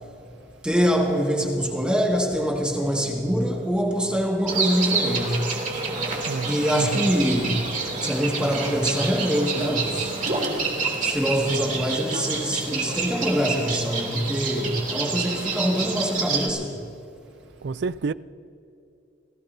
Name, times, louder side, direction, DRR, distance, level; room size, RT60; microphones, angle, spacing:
voice 1, 0.6-5.9 6.4-7.7 8.0-10.1 11.0-16.7, equal, 5° right, 1.9 m, -24 dB
sound 1, 4.5-16.5, right 4 dB, 40° right, 2.7 m, -28 dB
voice 2, 6.3-7.2 17.6-18.1, right 4 dB, 60° right, 0.4 m, -29 dB
29.5 x 18.0 x 2.7 m
head